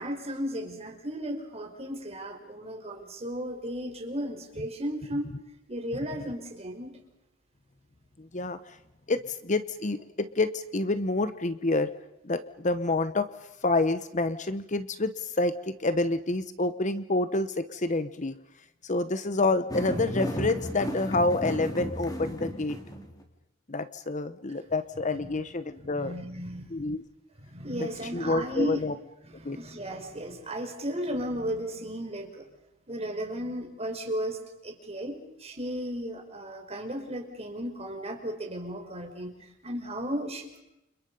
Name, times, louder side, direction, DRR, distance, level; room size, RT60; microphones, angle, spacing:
voice 1, 0.0-5.3 5.7-7.0 25.2-25.4 25.9-26.9 27.4-28.9 29.2-32.5 32.9-34.4 34.6-40.6, equal, 30° right, 4 dB, 5.0 m, -35 dB
voice 2, 8.2-8.6 9.1-11.9 12.2-13.3 13.6-18.3 18.8-22.8 23.7-26.1 26.7-27.0 28.1-28.9 29.4-29.6, left 2 dB, 35° left, 12 dB, 1.0 m, -28 dB
sound 1, 19.7-23.2, equal, 20° left, 3.7 m, -34 dB
29.5 x 29.0 x 5.5 m, 0.86 s
head